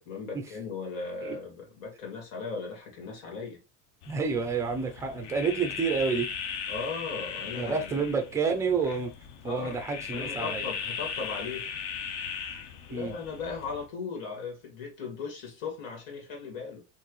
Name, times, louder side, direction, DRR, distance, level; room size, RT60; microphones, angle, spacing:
voice 1, 0.1-3.6 6.7-8.0 9.4-9.8 10.1-11.7 12.9-16.8, left 4 dB, 90° left, 2.5 m, -37 dB
sound 1, 4.0-13.9, left 7 dB, 55° left, 0.8 m, -38 dB
voice 2, 4.1-6.3 7.6-9.1 9.4-10.6 12.9-13.1, right 5 dB, 10° right, 0.4 m, -29 dB
4.6 x 3.1 x 3.1 m
cardioid pair, 165°, 39 cm